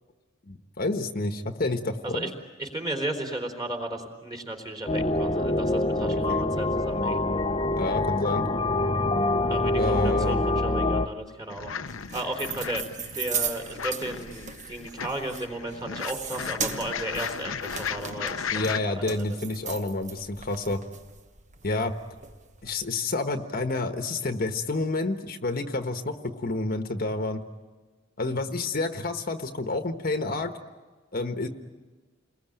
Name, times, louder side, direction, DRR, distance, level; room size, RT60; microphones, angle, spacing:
voice 1, 0.5-2.3 6.1-6.4 7.8-8.5 9.7-10.4 18.5-20.8 21.6-21.9 22.6-27.4 28.2-30.5 31.1-31.5, left 2 dB, 45° left, 6 dB, 1.3 m, -29 dB
voice 2, 2.6-7.2 9.5-11.7 12.1-12.9 13.1-19.4, right 1 dB, 20° right, 3 dB, 3.8 m, -34 dB
sound 1, 4.9-11.1, left 2 dB, 25° left, 0.9 m, -25 dB
sound 2, 11.5-18.8, left 6 dB, 80° left, 0.9 m, -36 dB
sound 3, 11.9-22.9, right 6 dB, 40° right, 1.3 m, -38 dB
29.0 x 21.5 x 9.1 m, 1.3 s
head